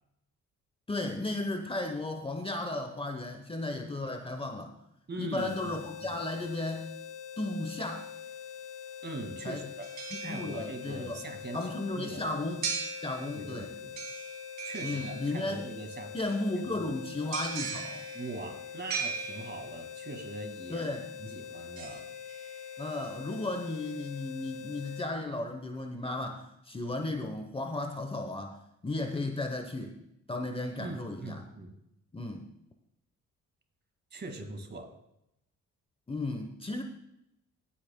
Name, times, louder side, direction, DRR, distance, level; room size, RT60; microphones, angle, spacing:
voice 1, 0.9-4.7 5.2-6.9 7.4-8.1 9.4-9.7 10.2-11.2 11.5-12.7 13.0-13.7 14.8-15.6 16.1-18.1 20.7-21.1 22.8-28.6 28.8-30.0 30.3-31.4 32.1-32.4 36.1-36.8, left 2 dB, 20° left, 5 dB, 0.9 m, -34 dB
voice 2, 5.1-5.7 6.0-6.2 9.0-9.9 10.2-12.4 13.3-14.0 14.6-16.1 16.8-16.9 18.1-20.9 21.2-22.1 30.8-31.7 34.1-34.9, right 2 dB, 35° right, 5 dB, 2.0 m, -42 dB
sound 1, 5.4-25.1, left 8 dB, 85° left, 0.7 m, -44 dB
sound 2, 9.8-11.0 12.6-13.6 14.0-15.7 17.3-19.9 21.8-22.9 23.4-23.5, right 5 dB, 65° right, 2.6 m, -39 dB
17.5 x 8.8 x 2.2 m, 0.80 s
cardioid pair, 90°, 30 cm